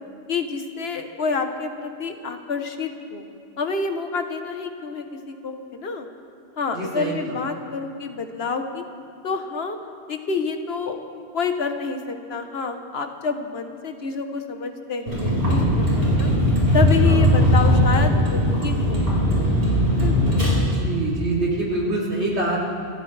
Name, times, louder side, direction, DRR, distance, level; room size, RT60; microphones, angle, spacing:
voice 1, 0.3-3.2 3.6-6.1 6.6-8.8 9.2-9.8 10.1-11.0 11.3-16.3 16.7-19.6 20.0-20.4, left 4 dB, 70° left, 6 dB, 1.3 m, -28 dB
voice 2, 6.7-7.1 17.1-17.2 20.5-22.6, right 2 dB, 90° right, -6 dB, 3.7 m, -25 dB
Vehicle, 15.1-20.5, equal, 60° right, 4.9 m, -19 dB
26.5 x 14.5 x 3.3 m, 2.5 s
omnidirectional pair, 1.1 m